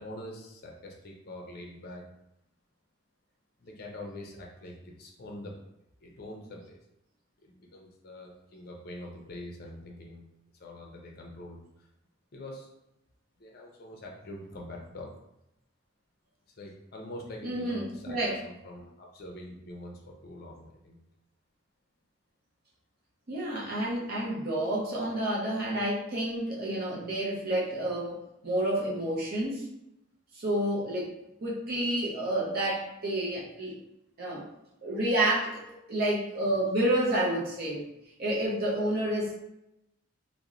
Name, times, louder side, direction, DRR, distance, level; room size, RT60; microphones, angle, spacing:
voice 1, 0.0-2.1 3.6-5.5 6.0-6.8 7.4-10.2 10.6-11.9 12.3-12.7 13.4-15.1 16.6-21.0, left 1 dB, 50° left, -1 dB, 0.5 m, -44 dB
voice 2, 17.4-18.4 23.3-28.2 28.4-29.6 30.3-31.1 31.4-33.8 34.2-34.5 34.8-35.6 35.9-37.9 38.2-39.3, right 1 dB, 45° right, -5 dB, 0.6 m, -29 dB
2.9 x 2.0 x 2.4 m, 0.86 s
head